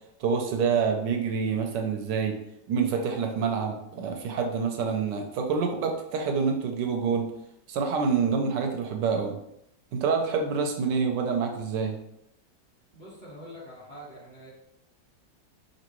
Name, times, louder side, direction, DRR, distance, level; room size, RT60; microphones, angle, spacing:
voice 1, 0.2-2.4 2.7-7.3 7.7-9.4 9.9-12.0, right 5 dB, 80° right, 3 dB, 1.2 m, -27 dB
voice 2, 12.9-14.5, equal, 25° left, -8 dB, 1.6 m, -45 dB
5.1 x 2.8 x 3.0 m, 0.79 s
omnidirectional pair, 1.9 m